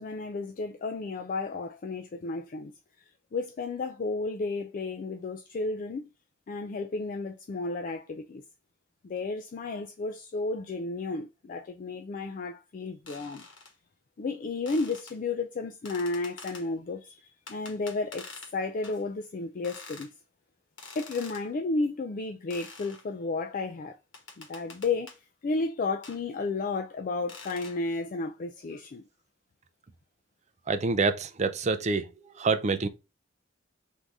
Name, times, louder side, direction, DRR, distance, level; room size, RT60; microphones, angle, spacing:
voice 1, 0.0-2.7 3.0-6.1 6.5-8.4 9.0-13.5 14.2-20.1 20.9-24.0 24.4-25.1 25.4-29.0, left 3 dB, 45° left, 0.4 m, -33 dB
sound 1, 13.1-13.7 14.7-15.2 15.9-16.7 17.5-18.5 18.8-19.0 19.6-20.1 20.8-21.5 22.5-23.0 24.1-25.2 26.0-26.2 27.3-27.8, left 4 dB, 80° left, 1.2 m, -46 dB
voice 2, 30.7-32.9, right 4 dB, 40° right, 0.5 m, -27 dB
3.7 x 2.7 x 4.6 m
head